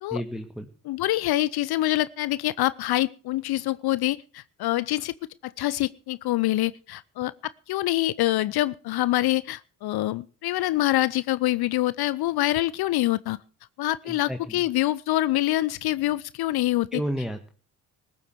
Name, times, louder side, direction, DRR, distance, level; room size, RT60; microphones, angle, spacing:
voice 1, 0.1-0.7 14.1-14.6 16.9-17.5, equal, ahead, 4 dB, 1.8 m, -32 dB
voice 2, 0.8-5.1 5.4-13.4 13.8-17.0, left 16 dB, 50° left, 19 dB, 0.7 m, -25 dB
20.0 x 7.8 x 6.7 m, 0.39 s
figure-of-eight pair, 45°, 48 cm